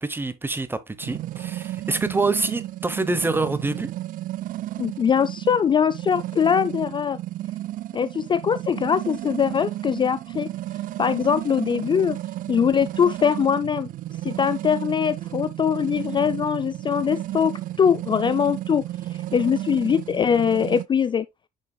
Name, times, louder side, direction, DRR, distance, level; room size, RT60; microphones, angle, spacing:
voice 1, 0.0-3.9, right 3 dB, 15° right, 0.9 m, -26 dB
sound 1, 1.0-20.9, right 14 dB, 55° right, 0.4 m, -33 dB
voice 2, 4.8-7.2 7.9-10.5 11.0-12.2 12.5-13.9 14.2-18.8 19.3-21.3, left 7 dB, 30° left, 0.4 m, -22 dB
9.7 x 5.1 x 2.3 m
cardioid pair, 110°, 17 cm